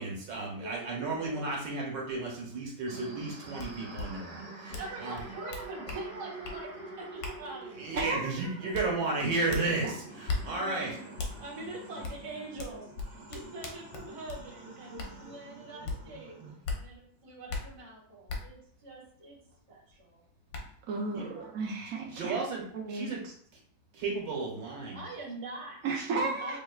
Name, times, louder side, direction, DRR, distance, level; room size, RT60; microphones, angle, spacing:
voice 1, 0.0-5.2 7.8-10.9 21.1-21.3 22.1-22.6 22.9-23.2 23.9-25.0, right 3 dB, 80° right, -2 dB, 1.9 m, -33 dB
voice 2, 0.6-1.6 4.6-7.9 10.5-11.0 11.4-16.4 16.7-20.2 21.3-21.5 24.9-25.9 26.4-26.6, right 2 dB, 20° right, -4 dB, 1.0 m, -44 dB
sound 1, 2.9-16.6, right 2 dB, 45° right, 0.7 m, -46 dB
sound 2, 3.6-3.7 3.9-4.1 4.7-4.9 5.1-6.0 6.4-6.6 7.2-7.4 8.0-8.1 8.7-8.9 9.5-9.6 10.3-10.4 11.2-11.3 12.0-12.2 12.6-14.4 15.0-15.1 15.8-16.0 16.6-16.8 17.5-17.6 18.3-18.4 19.9-20.0 20.5-20.6, left 3 dB, 85° left, 1.5 m, -35 dB
voice 3, 7.9-8.8 20.9-22.4 22.7-23.3 25.8-26.6, right 3 dB, 65° right, -2 dB, 0.9 m, -34 dB
5.9 x 3.2 x 2.3 m, 0.63 s
omnidirectional pair, 1.9 m